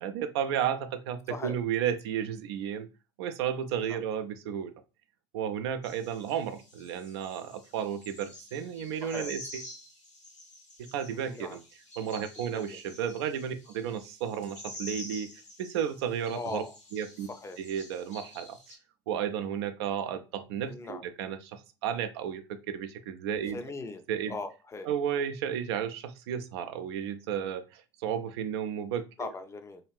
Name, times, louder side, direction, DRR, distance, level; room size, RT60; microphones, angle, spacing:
voice 1, 0.0-2.9 3.2-4.7 5.3-9.6 10.9-11.6 12.0-15.3 15.6-16.6 16.9-17.3 17.6-18.6 19.1-23.6 24.1-24.4 24.9-29.0, right 8 dB, 60° right, 9 dB, 0.4 m, -33 dB
sound 1, 5.8-18.7, left 1 dB, 85° left, 1.1 m, -48 dB
voice 2, 11.1-11.6 12.4-12.8 16.3-16.7 17.3-17.6 20.6-21.0 23.5-24.0 24.3-24.9 29.2-29.8, left 3 dB, 20° left, 8 dB, 0.4 m, -39 dB
2.8 x 2.4 x 3.1 m, 0.30 s
figure-of-eight pair, 70°, 15 cm